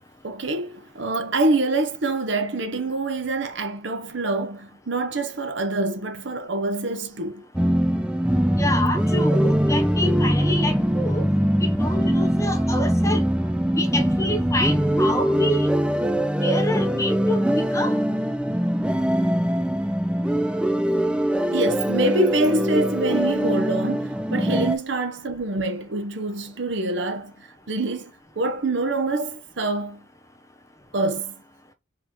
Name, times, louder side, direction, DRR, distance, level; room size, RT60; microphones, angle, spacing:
voice 1, 0.2-7.4 21.5-30.0 30.9-31.3, right 2 dB, 65° right, 0.8 m, -26 dB
sound 1, 7.5-24.7, equal, 5° right, 0.4 m, -22 dB
voice 2, 8.6-11.3 11.6-13.2 13.7-15.7 16.4-17.5 17.7-18.0, left 1 dB, 15° left, 0.7 m, -27 dB
4.9 x 3.0 x 3.6 m
head